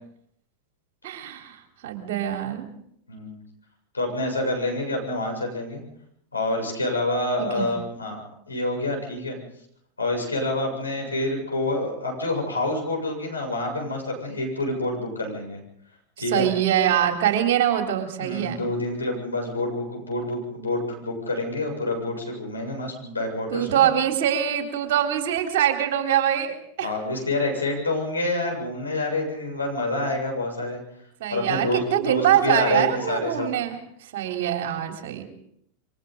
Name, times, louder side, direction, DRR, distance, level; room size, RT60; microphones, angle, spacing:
voice 1, 1.0-2.7 7.4-7.7 16.3-18.6 23.5-26.9 31.2-33.8 34.1-35.2, right 10 dB, 55° right, 3 dB, 3.7 m, -24 dB
voice 2, 3.9-5.8 6.3-9.4 10.0-15.6 16.2-16.5 18.2-23.9 26.8-30.8 31.3-33.5, left 2 dB, 80° left, 1 dB, 7.2 m, -27 dB
28.0 x 24.0 x 3.9 m, 0.71 s
figure-of-eight pair, 90°, 0 cm